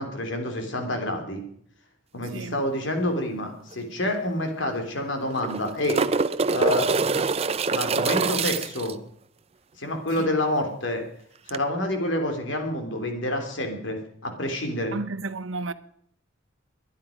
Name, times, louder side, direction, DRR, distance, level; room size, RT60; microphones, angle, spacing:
voice 1, 0.0-1.4 2.1-6.0 6.5-6.9 7.7-8.9 9.8-11.0 11.5-14.0 14.2-14.9, left 1 dB, 70° left, 3.1 m, -28 dB
sound 1, 3.7-3.8 4.1-4.2 5.2-8.9 11.5-11.6, right 4 dB, 30° right, 0.5 m, -25 dB
voice 2, 14.9-15.7, right 3 dB, 85° right, 0.9 m, -32 dB
22.0 x 10.5 x 5.1 m
head